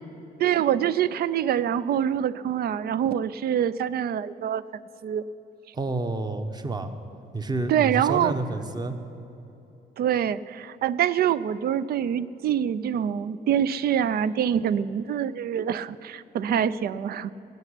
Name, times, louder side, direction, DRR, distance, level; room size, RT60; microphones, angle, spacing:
voice 1, 0.4-5.2 7.7-8.3 10.0-17.3, right 9 dB, 60° right, 17 dB, 0.5 m, -25 dB
voice 2, 5.7-6.9 7.3-8.9, right 2 dB, 25° right, 8 dB, 1.0 m, -29 dB
17.5 x 8.0 x 9.8 m, 2.9 s
cardioid pair, 140°, 18 cm